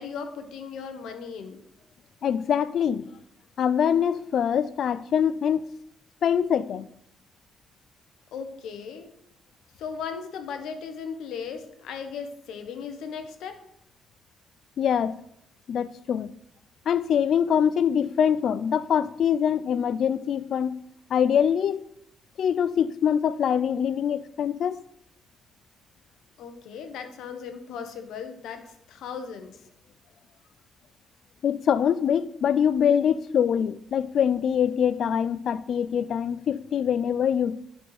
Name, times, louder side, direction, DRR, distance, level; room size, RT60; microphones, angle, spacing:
voice 1, 0.0-1.6 8.3-9.1 9.8-13.6 26.4-29.6, left 6 dB, 80° left, 1.2 m, -37 dB
voice 2, 2.2-3.0 3.6-5.7 6.2-6.9 14.8-15.2 15.7-16.3 16.9-20.8 21.1-21.8 22.4-24.8 31.4-37.6, left 8 dB, 65° left, 0.4 m, -24 dB
10.0 x 4.5 x 4.9 m
cardioid pair, 90°, 0 cm